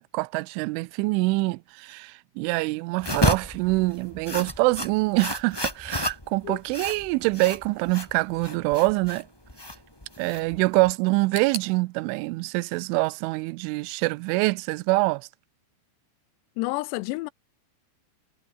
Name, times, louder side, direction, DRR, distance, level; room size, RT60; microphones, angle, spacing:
voice 1, 0.0-9.3 10.2-15.3, right 23 dB, 90° right, 3.1 m, -25 dB
sound 1, 3.0-10.9, left 1 dB, 5° left, 2.7 m, -31 dB
sound 2, 11.3-14.2 14.4-15.3 15.6-15.7 16.5-16.6, right 4 dB, 55° right, 9.5 m, -43 dB
voice 2, 16.6-17.3, left 21 dB, 85° left, 2.5 m, -29 dB
omnidirectional pair, 5.4 m